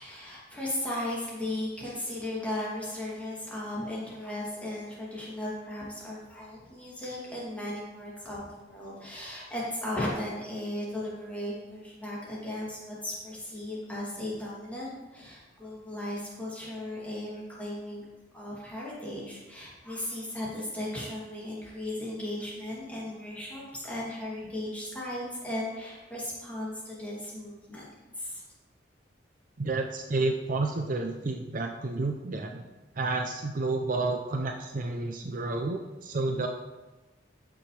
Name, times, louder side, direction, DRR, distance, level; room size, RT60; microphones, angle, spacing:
voice 1, 0.0-18.0 18.3-27.8 28.2-28.4, left 1 dB, 5° left, -6 dB, 2.6 m, -36 dB
voice 2, 29.6-32.6 32.9-36.5, right 3 dB, 45° right, 4 dB, 0.5 m, -30 dB
13.5 x 5.9 x 3.3 m, 1.1 s
head